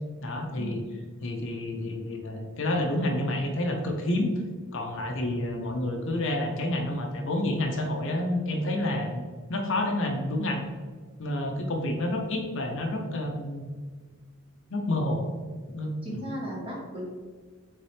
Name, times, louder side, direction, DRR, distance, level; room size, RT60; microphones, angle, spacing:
voice 1, 0.2-0.8 1.2-4.3 4.7-9.2 9.5-10.6 11.2-13.7 14.7-15.2 15.7-16.2, left 1 dB, 60° left, 3 dB, 0.6 m, -29 dB
voice 2, 16.0-17.1, right 1 dB, 25° right, -4 dB, 1.2 m, -36 dB
4.1 x 3.7 x 3.3 m, 1.5 s
head